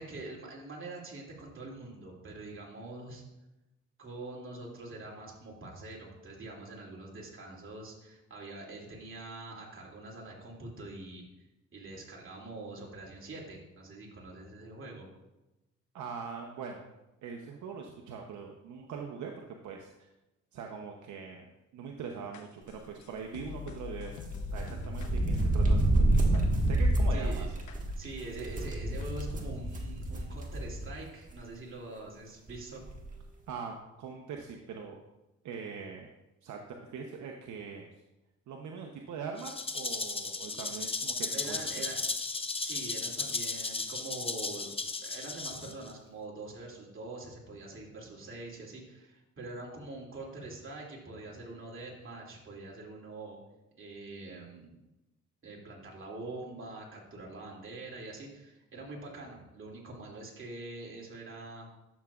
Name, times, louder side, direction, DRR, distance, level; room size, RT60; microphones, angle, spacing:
voice 1, 0.0-3.2 4.0-11.3 11.7-15.1 27.1-27.5 28.0-32.8 41.3-42.0 42.6-44.8 45.0-53.4 53.8-54.8 55.4-61.7, right 2 dB, 45° right, -2 dB, 2.7 m, -44 dB
voice 2, 15.9-16.9 17.2-19.9 20.5-21.5 21.7-24.1 24.5-27.4 33.5-35.0 35.4-36.1 36.4-36.6 36.9-37.9 38.5-41.8, right 5 dB, 75° right, 1 dB, 0.9 m, -42 dB
sound 1, 22.3-27.2 27.7-27.8 28.3-28.4 28.7-29.3, left 9 dB, 75° left, 0.9 m, -44 dB
sound 2, 24.2-30.9 31.3-31.4 32.5-32.6 32.8-33.1, right 1 dB, 25° right, 1.6 m, -28 dB
Rattle (instrument), 39.4-45.9, left 3 dB, 20° left, 0.6 m, -35 dB
11.5 x 7.0 x 2.4 m, 0.99 s
cardioid pair, 90°, 30 cm